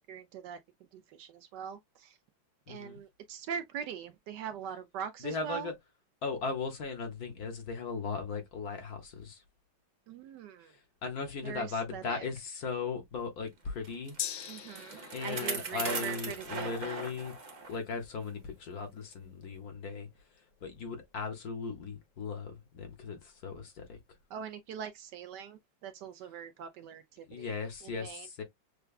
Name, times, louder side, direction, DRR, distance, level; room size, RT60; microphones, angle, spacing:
voice 1, 0.1-0.6 0.9-2.2 2.7-5.7 10.1-10.7 11.4-12.3 14.5-17.1 24.3-28.3, right 8 dB, 75° right, 1.1 m, -42 dB
voice 2, 2.7-3.0 5.2-5.7 6.2-9.4 11.0-14.2 15.1-17.3 17.7-20.1 20.6-24.0 27.3-28.4, left 4 dB, 55° left, 1.4 m, -37 dB
Bicycle, 13.8-17.8 18.2-18.3 19.1-19.2, right 4 dB, 50° right, 0.5 m, -39 dB
Gong, 14.2-22.0 22.3-22.4, left 11 dB, 80° left, 1.4 m, -47 dB
6.7 x 2.2 x 2.3 m
omnidirectional pair, 2.1 m